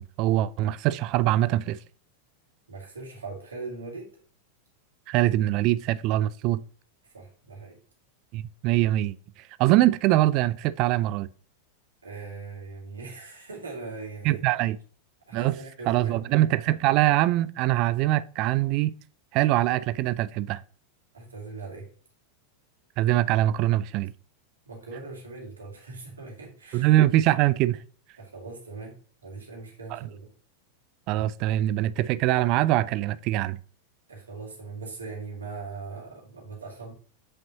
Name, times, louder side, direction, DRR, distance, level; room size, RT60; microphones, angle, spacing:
voice 1, 0.0-1.8 5.1-6.6 8.3-9.1 9.6-11.3 14.2-14.8 15.3-15.5 15.9-18.9 19.3-20.6 23.0-24.1 26.7-27.8 29.9-30.0 31.1-33.6, right 15 dB, 40° right, 0.3 m, -23 dB
voice 2, 2.7-4.1 7.1-7.8 12.0-14.4 15.3-16.3 21.1-21.9 24.7-26.9 28.2-28.9 29.2-30.3 34.1-36.9, right 3 dB, 70° right, 2.3 m, -40 dB
8.2 x 5.3 x 2.9 m
figure-of-eight pair, 90°, 0 cm